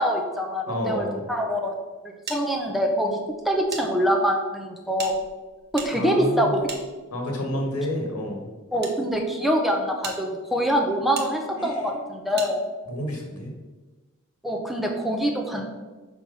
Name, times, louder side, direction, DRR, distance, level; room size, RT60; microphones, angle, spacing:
voice 1, 0.0-1.8 2.3-3.2 3.4-5.2 5.7-6.6 8.7-12.6 14.4-15.7, equal, ahead, 1 dB, 0.7 m, -24 dB
voice 2, 0.7-1.2 5.9-6.6 7.1-8.5 11.6-12.0 12.9-13.5, equal, 75° left, 1 dB, 1.7 m, -29 dB
sound 1, 2.3-3.8 4.1-4.2 4.9-7.4 8.2-8.9 9.5-9.6 10.0-10.2 11.1-11.3 12.4-12.5, right 5 dB, 50° right, 1.1 m, -38 dB
6.3 x 4.3 x 5.5 m, 1.2 s
head